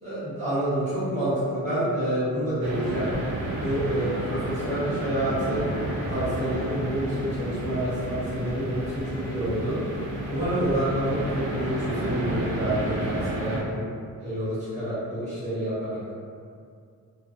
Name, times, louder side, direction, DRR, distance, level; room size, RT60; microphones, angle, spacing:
voice 1, 0.0-3.1 3.6-5.6 6.1-9.0 9.3-9.8 10.3-13.8 14.2-16.0, right 1 dB, 20° right, -13 dB, 1.1 m, -28 dB
sound 1, 2.6-13.6, right 1 dB, 55° right, 0.5 m, -31 dB
2.3 x 2.2 x 2.4 m, 2.3 s
wide cardioid pair, 180°, 35 cm